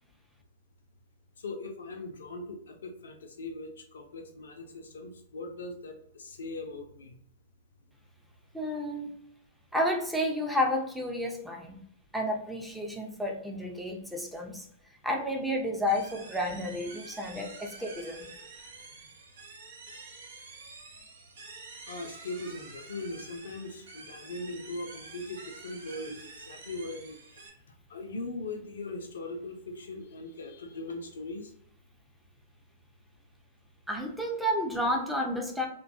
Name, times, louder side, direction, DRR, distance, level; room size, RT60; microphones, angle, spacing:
voice 1, 1.4-7.2 21.9-27.5 27.9-31.5, left 2 dB, 80° left, 4 dB, 0.4 m, -40 dB
voice 2, 8.5-9.1 9.7-11.8 12.1-14.7 15.0-18.3 33.9-35.7, left 1 dB, ahead, 1 dB, 0.5 m, -31 dB
sound 1, 15.9-27.5, right 3 dB, 70° right, 0.6 m, -48 dB
2.5 x 2.2 x 2.6 m, 0.70 s
hypercardioid pair, 110°, 0 cm